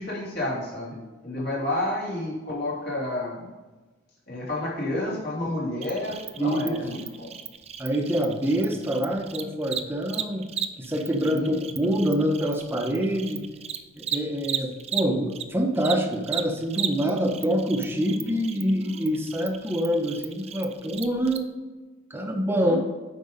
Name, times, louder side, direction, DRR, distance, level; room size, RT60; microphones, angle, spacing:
voice 1, 0.0-3.5 4.3-7.3 11.3-11.6 22.6-22.8, left 1 dB, 55° left, -5 dB, 3.0 m, -30 dB
Cricket, 5.8-15.4 15.7-21.4, right 8 dB, 30° right, 0.5 m, -35 dB
voice 2, 6.4-6.8 7.8-10.5 10.8-13.4 14.0-21.4 22.1-22.8, equal, 10° right, 2 dB, 1.0 m, -26 dB
9.3 x 5.3 x 5.2 m, 1.2 s
head